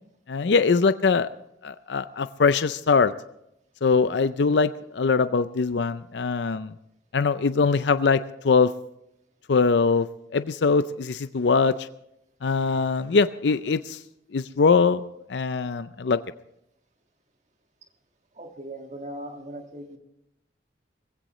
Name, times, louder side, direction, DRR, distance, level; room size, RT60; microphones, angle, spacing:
voice 1, 0.3-1.3 1.6-3.1 3.8-6.7 7.1-8.7 9.5-10.1 10.3-11.9 12.4-14.0 14.3-16.2, left 4 dB, 85° left, 12 dB, 0.5 m, -22 dB
voice 2, 18.3-20.0, right 1 dB, 40° right, 4 dB, 1.7 m, -39 dB
21.0 x 16.0 x 3.1 m, 0.81 s
head